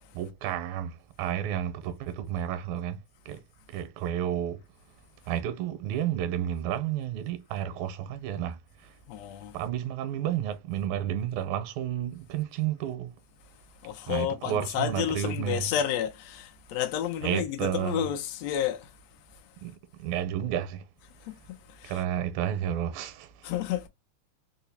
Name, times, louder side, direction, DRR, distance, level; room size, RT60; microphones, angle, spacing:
voice 1, 0.1-3.4 3.7-4.6 5.3-8.6 9.5-13.1 14.1-15.7 17.2-18.1 19.6-20.8 21.8-23.5, right 10 dB, 85° right, 2.0 m, -31 dB
voice 2, 9.1-9.5 13.8-18.9 21.3-22.0 23.4-23.9, left 10 dB, 75° left, 1.6 m, -31 dB
4.7 x 2.0 x 2.7 m
omnidirectional pair, 3.4 m